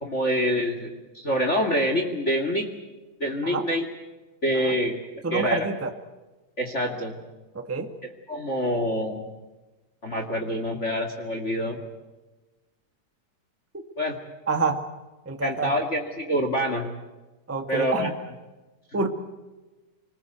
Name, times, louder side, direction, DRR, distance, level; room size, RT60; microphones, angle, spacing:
voice 1, 0.0-2.7 3.2-3.8 4.4-4.9 5.3-5.7 6.6-7.2 8.3-9.3 10.0-11.8 14.0-14.2 15.4-16.9 17.7-18.1 18.9-19.0, equal, 25° left, 4 dB, 2.2 m, -26 dB
voice 2, 5.2-5.9 7.5-7.9 14.5-14.8 15.3-15.7 17.5-18.1 18.9-19.1, right 4 dB, 10° right, 6 dB, 0.7 m, -27 dB
25.0 x 20.5 x 8.1 m, 1.2 s
omnidirectional pair, 3.4 m